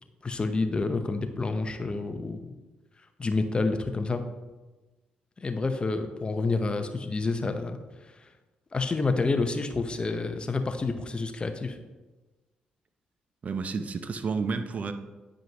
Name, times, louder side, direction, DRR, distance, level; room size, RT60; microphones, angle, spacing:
voice 1, 0.2-2.5 3.2-4.2 5.4-7.8 8.0-8.3 8.7-11.8, left 3 dB, 35° left, 7 dB, 0.8 m, -28 dB
voice 2, 13.4-14.9, right 4 dB, 50° right, 9 dB, 0.6 m, -30 dB
9.3 x 5.1 x 3.0 m, 1.2 s
supercardioid pair, 55°, 3 cm